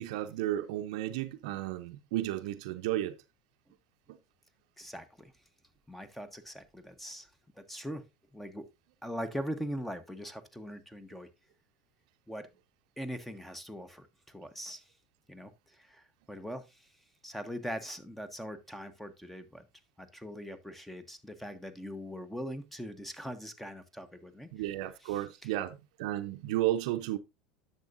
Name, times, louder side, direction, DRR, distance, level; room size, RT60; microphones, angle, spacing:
voice 1, 0.0-3.2 4.1-4.2 24.5-27.2, right 14 dB, 70° right, 0.7 m, -33 dB
voice 2, 4.8-5.3 5.9-7.3 7.6-8.1 8.3-8.7 9.0-11.3 12.3-12.5 13.0-14.9 15.3-16.9 17.2-19.7 20.0-24.5 25.0-25.5, equal, 5° left, 1.2 m, -41 dB
10.5 x 6.9 x 2.6 m
hypercardioid pair, 85°, 4 cm